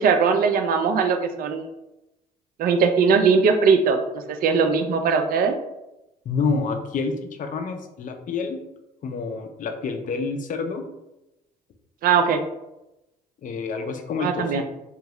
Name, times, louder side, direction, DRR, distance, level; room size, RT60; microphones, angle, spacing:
voice 1, 0.0-1.7 2.6-5.5 12.0-12.4 14.2-14.6, right 5 dB, 50° right, 6 dB, 0.4 m, -20 dB
voice 2, 6.3-8.6 9.0-10.9 13.4-14.6, left 4 dB, 40° left, 5 dB, 0.5 m, -28 dB
2.6 x 2.3 x 3.0 m, 0.93 s
hypercardioid pair, 55°, 20 cm